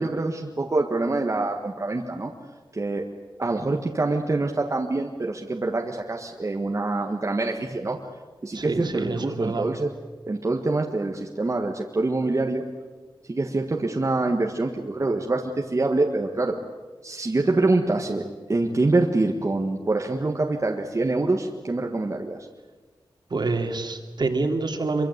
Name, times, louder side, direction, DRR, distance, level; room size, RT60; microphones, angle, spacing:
voice 1, 0.0-2.3 2.7-3.0 3.4-8.0 8.4-9.9 10.3-12.6 13.3-16.6 17.0-18.2 18.5-22.5, right 2 dB, 35° right, 1 dB, 1.6 m, -25 dB
voice 2, 8.5-9.7 23.3-25.1, right 3 dB, 55° right, 4 dB, 2.7 m, -27 dB
25.0 x 24.0 x 8.2 m, 1.3 s
wide cardioid pair, 120°, 9 cm